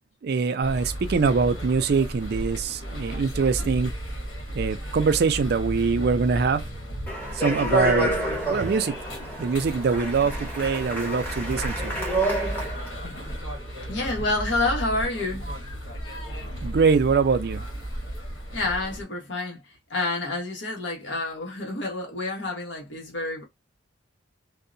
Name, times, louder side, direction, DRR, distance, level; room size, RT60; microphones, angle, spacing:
voice 1, 0.2-3.9 4.5-6.6 7.3-8.2 8.5-9.0 9.4-11.9 16.6-17.6, right 5 dB, 55° right, 0.4 m, -23 dB
sound 1, 0.6-19.0, right 1 dB, 85° left, 1.2 m, -34 dB
Speech, 7.1-12.9, right 2 dB, 10° left, 0.8 m, -28 dB
voice 2, 13.9-15.6 18.5-23.5, left 2 dB, 70° left, 1.1 m, -29 dB
2.7 x 2.1 x 2.5 m
head